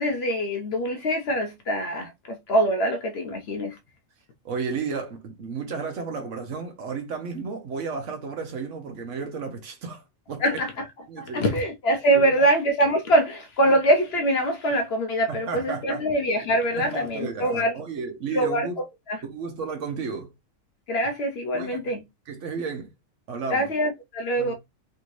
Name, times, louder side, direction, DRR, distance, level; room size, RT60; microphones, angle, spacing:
voice 1, 0.0-3.8 10.4-10.8 11.2-17.7 18.3-19.2 20.9-22.0 23.5-24.5, right 1 dB, 60° left, 0.7 m, -24 dB
voice 2, 4.4-10.0 10.3-10.4 11.1-11.5 12.1-12.5 13.7-13.8 15.3-16.0 16.7-18.8 19.2-20.3 21.5-21.8 22.3-22.9 23.3-23.7 24.4-24.5, right 5 dB, 65° right, 1.1 m, -33 dB
3.4 x 2.7 x 3.0 m
omnidirectional pair, 1.4 m